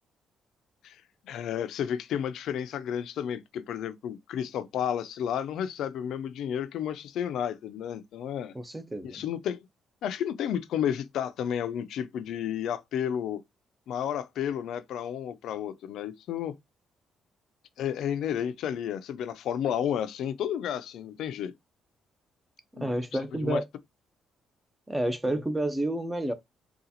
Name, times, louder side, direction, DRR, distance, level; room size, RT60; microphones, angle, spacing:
voice 1, 1.2-8.5 9.0-9.6 10.0-13.4 13.9-16.5 17.8-21.5 22.8-23.0 23.3-23.6, left 9 dB, 80° left, 0.4 m, -32 dB
voice 2, 8.5-9.2 22.8-23.6 24.9-26.3, right 1 dB, 10° right, 0.7 m, -30 dB
3.9 x 2.3 x 2.8 m
cardioid pair, 90°, 0 cm